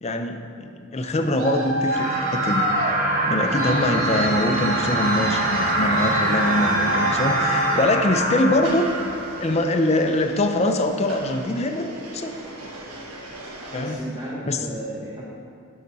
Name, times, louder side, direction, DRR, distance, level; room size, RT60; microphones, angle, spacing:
voice 1, 0.0-2.7 3.3-8.9 9.4-11.9 12.1-12.3 13.7-14.0 14.5-14.6, left 1 dB, 30° left, 5 dB, 0.5 m, -23 dB
Traffic noise roadway noise, 0.9-8.7, right 1 dB, 60° right, 1.2 m, -30 dB
sound 1, 1.9-9.4, right 1 dB, 40° right, 1.1 m, -24 dB
sound 2, 8.6-13.9, right 1 dB, 90° right, 1.3 m, -39 dB
voice 2, 13.7-15.3, equal, 20° right, -7 dB, 1.2 m, -34 dB
11.5 x 5.9 x 4.1 m, 2.3 s
head